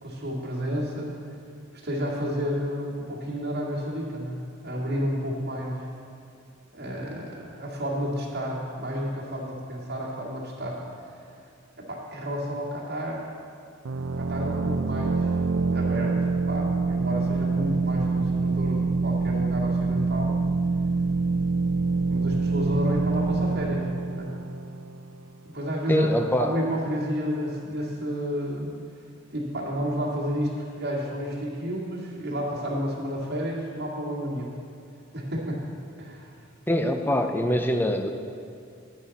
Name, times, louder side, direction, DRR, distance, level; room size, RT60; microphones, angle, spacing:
voice 1, 0.0-1.2 1.8-4.4 4.6-5.9 6.7-11.2 11.9-13.2 14.2-15.3 15.7-20.3 22.1-24.3 25.4-26.1 26.4-28.7 29.3-34.5 35.1-35.6 36.0-36.4, equal, 55° right, -4 dB, 2.2 m, -31 dB
sound 1, 13.8-25.4, right 4 dB, 70° right, 0.5 m, -26 dB
voice 2, 25.9-26.6 36.7-38.1, equal, 10° left, 6 dB, 0.5 m, -23 dB
9.9 x 9.7 x 4.2 m, 2.4 s
head